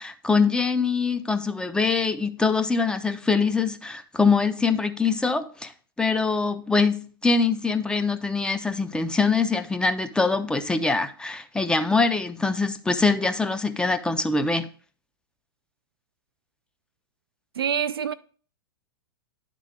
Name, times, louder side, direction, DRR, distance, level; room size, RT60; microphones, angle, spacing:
voice 1, 0.0-5.7 6.0-14.7, left 4 dB, 5° left, 0.5 m, -23 dB
voice 2, 17.6-18.1, right 8 dB, 75° right, 0.4 m, -25 dB
10.0 x 3.8 x 3.2 m
figure-of-eight pair, 100°, 13 cm